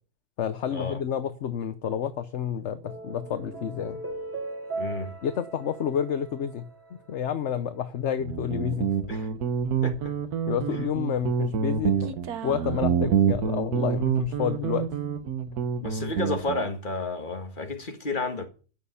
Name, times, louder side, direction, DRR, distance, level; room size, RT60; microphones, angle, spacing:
voice 1, 0.4-4.0 5.2-6.7 7.1-8.9 10.5-12.2 12.4-14.9, left 8 dB, 55° left, 1.1 m, -29 dB
sound 1, 2.6-7.2, right 2 dB, 10° right, 3.7 m, -38 dB
voice 2, 4.8-5.2 9.1-9.3 9.8-10.1 15.8-18.5, left 3 dB, 35° left, 2.0 m, -31 dB
Guitar, 8.2-16.7, right 7 dB, 85° right, 1.5 m, -27 dB
15.0 x 6.7 x 7.0 m
omnidirectional pair, 1.6 m